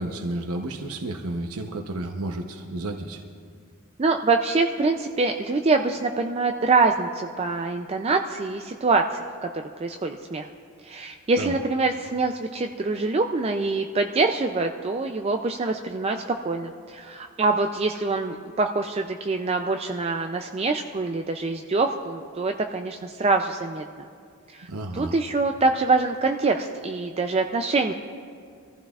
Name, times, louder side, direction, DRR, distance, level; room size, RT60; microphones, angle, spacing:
voice 1, 0.0-3.2 11.4-11.6 24.7-25.1, right 1 dB, 85° right, 3 dB, 0.9 m, -31 dB
voice 2, 4.0-9.0 9.4-9.5 9.8-10.5 10.8-23.8 24.5-24.7 24.9-27.9, right 3 dB, 30° right, 4 dB, 0.4 m, -25 dB
24.5 x 14.5 x 2.4 m, 2.2 s
head